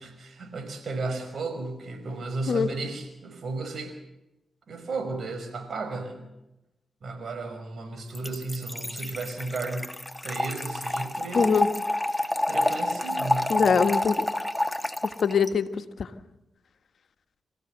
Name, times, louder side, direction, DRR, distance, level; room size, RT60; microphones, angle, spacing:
voice 1, 0.0-3.9 4.7-6.2 7.0-9.9 10.2-11.7 12.5-13.5, right 3 dB, 65° right, 8 dB, 5.6 m, -34 dB
Trickle dribble / Fill (with liquid), 8.1-15.5, left 1 dB, 10° left, 2.1 m, -28 dB
voice 2, 11.3-11.7 13.5-14.2 15.0-15.7 16.0-16.1, left 6 dB, 70° left, 10 dB, 1.4 m, -23 dB
27.0 x 15.0 x 7.9 m, 0.94 s
supercardioid pair, 40°, 0 cm